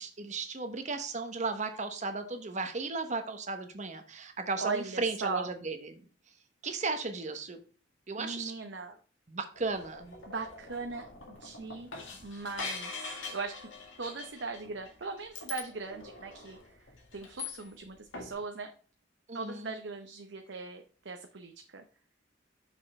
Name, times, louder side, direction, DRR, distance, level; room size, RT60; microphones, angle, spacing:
voice 1, 0.0-6.0 6.6-7.6 8.1-8.5 9.3-10.1 19.3-19.7, right 3 dB, 40° right, 7 dB, 1.0 m, -35 dB
voice 2, 4.6-5.5 8.2-9.0 10.3-11.9 12.2-13.7 14.0-16.8 17.1-18.7 19.3-21.8, right 4 dB, 65° right, 5 dB, 0.7 m, -39 dB
sound 1, 9.5-17.9 18.1-18.3, left 4 dB, 80° left, 2.0 m, -44 dB
6.2 x 5.6 x 4.2 m, 0.40 s
head